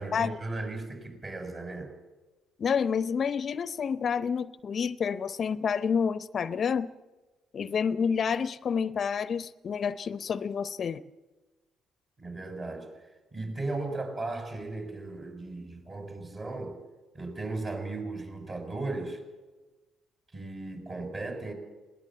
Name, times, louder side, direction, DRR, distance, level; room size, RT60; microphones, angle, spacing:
voice 1, 0.0-1.9 12.2-12.9 13.3-16.8 17.1-19.2 20.3-21.5, right 2 dB, 40° right, 5 dB, 6.3 m, -36 dB
voice 2, 2.6-6.9 7.5-11.0, left 6 dB, 50° left, 17 dB, 0.6 m, -29 dB
20.5 x 18.5 x 7.5 m, 1.2 s
hypercardioid pair, 55°, 0 cm